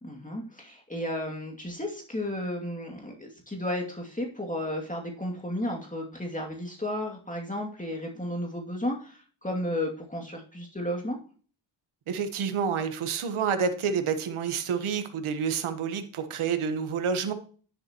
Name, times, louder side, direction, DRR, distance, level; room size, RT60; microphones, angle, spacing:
voice 1, 0.0-11.2, left 1 dB, 15° left, 0 dB, 2.4 m, -33 dB
voice 2, 12.1-17.3, right 6 dB, 85° right, 8 dB, 1.3 m, -28 dB
10.0 x 7.4 x 2.9 m, 0.41 s
cardioid pair, 70°, 48 cm